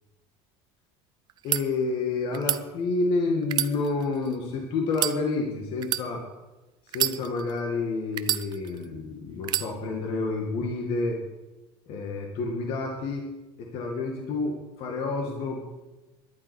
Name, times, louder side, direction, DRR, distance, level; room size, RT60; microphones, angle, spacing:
sound 1, 1.3-1.6 2.3-2.6 3.4-4.4 4.9-5.2 5.8-6.1 6.9-7.6 8.2-8.9 9.4-9.7, right 12 dB, 40° right, 0.6 m, -28 dB
voice 1, 1.4-6.2 6.9-11.2 11.9-13.2 13.6-15.6, left 3 dB, 50° left, 1 dB, 2.2 m, -29 dB
11.5 x 9.3 x 9.8 m, 1.1 s
cardioid pair, 160°, 12 cm